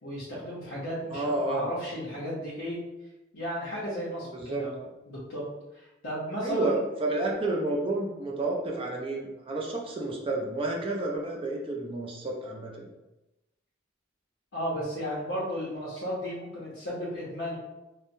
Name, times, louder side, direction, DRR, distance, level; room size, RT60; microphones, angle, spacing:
voice 1, 0.0-2.8 3.3-4.8 5.1-5.4 5.7-6.8 14.5-17.6, equal, 85° left, -8 dB, 0.8 m, -34 dB
voice 2, 1.1-1.7 4.3-4.6 6.4-12.9, right 2 dB, 25° right, -2 dB, 0.4 m, -30 dB
3.0 x 2.1 x 2.6 m, 0.98 s
head